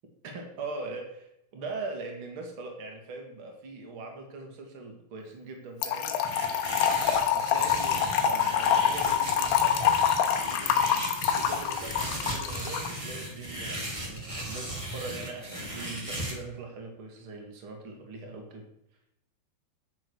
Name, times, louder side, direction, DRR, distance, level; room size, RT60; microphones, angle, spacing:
voice 1, 0.2-6.5 7.1-10.0 11.3-18.6, right 3 dB, 40° right, 2 dB, 2.2 m, -41 dB
Trickle dribble / Fill (with liquid), 5.8-12.9, left 8 dB, 80° left, 2.9 m, -26 dB
sound 1, 6.2-16.3, right 1 dB, 15° right, 1.2 m, -37 dB
10.5 x 7.1 x 6.4 m, 0.80 s
omnidirectional pair, 4.9 m